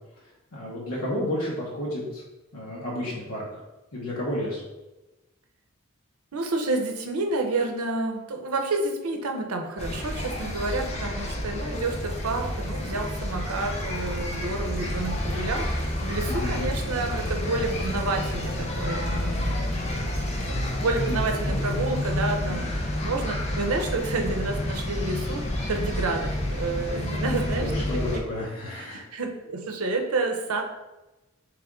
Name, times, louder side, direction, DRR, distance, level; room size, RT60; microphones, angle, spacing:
voice 1, 0.5-2.2 2.5-3.6 3.9-4.6 16.2-16.7 21.1-21.9 22.4-22.7 27.5-29.1, left 1 dB, 85° left, -5 dB, 0.9 m, -32 dB
voice 2, 6.3-20.0 20.4-25.4 25.7-28.2 28.8-30.6, right 3 dB, 90° right, 3 dB, 0.7 m, -30 dB
sound 1, 9.8-28.2, left 1 dB, 30° left, 0.5 m, -29 dB
3.5 x 3.4 x 3.6 m, 1.1 s
head